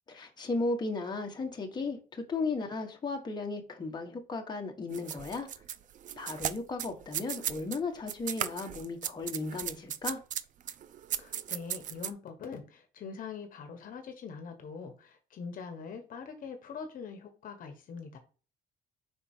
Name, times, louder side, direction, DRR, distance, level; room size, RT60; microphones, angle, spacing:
voice 1, 0.1-5.5 6.2-10.2, left 3 dB, 25° left, 1.4 m, -35 dB
sound 1, 4.9-7.8 8.1-12.1, right 10 dB, 50° right, 0.5 m, -36 dB
voice 2, 11.2-18.2, left 5 dB, 55° left, 1.2 m, -43 dB
5.3 x 4.4 x 4.3 m
cardioid pair, 110°, 17 cm